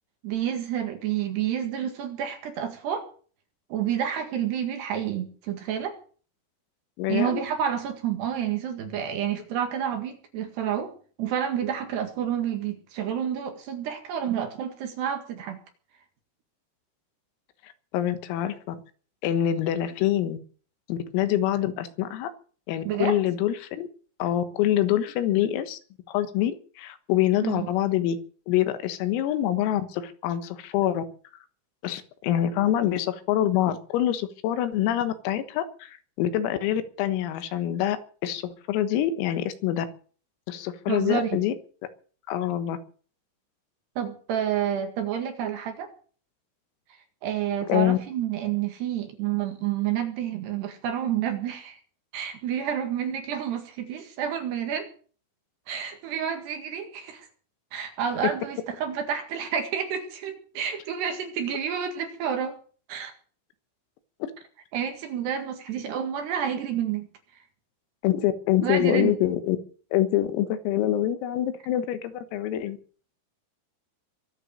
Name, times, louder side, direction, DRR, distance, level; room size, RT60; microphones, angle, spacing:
voice 1, 0.2-3.1 3.7-6.0 7.1-15.6 22.8-23.2 27.4-27.7 40.9-41.3 44.0-45.9 47.2-51.8 52.1-54.9 55.7-57.3 57.7-62.6 62.9-63.1 64.7-67.1 68.6-69.1, right 9 dB, 60° right, 5 dB, 3.6 m, -29 dB
voice 2, 7.0-7.4 17.6-18.8 19.2-20.4 20.9-22.3 22.7-23.9 24.2-25.8 26.1-28.2 28.5-31.0 31.8-38.0 38.2-39.9 40.5-41.5 42.3-42.8 47.6-48.0 68.0-69.6 69.9-72.8, left 12 dB, 85° left, 10 dB, 4.1 m, -25 dB
23.0 x 8.3 x 6.5 m, 0.42 s
omnidirectional pair, 5.9 m